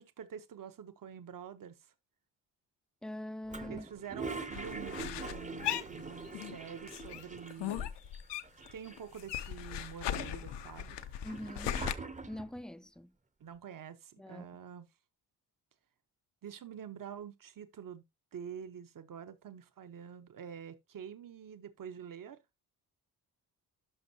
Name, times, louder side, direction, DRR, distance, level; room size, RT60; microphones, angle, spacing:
voice 1, 0.0-1.8 3.7-7.9 8.7-11.0 13.4-14.9 16.4-18.0 18.3-22.4, right 8 dB, 50° right, 1.1 m, -47 dB
voice 2, 3.0-3.9 11.2-11.8 12.3-13.2 14.2-14.5, left 1 dB, ahead, 0.4 m, -43 dB
Toilet flush, 3.5-7.8 8.1-8.2 8.4-9.3 9.8-12.6, right 4 dB, 20° right, 0.8 m, -44 dB
sound 1, 4.5-6.6 6.9-8.7 9.0-11.9, left 11 dB, 85° left, 0.8 m, -38 dB
12.0 x 5.3 x 2.8 m
cardioid pair, 80°, 41 cm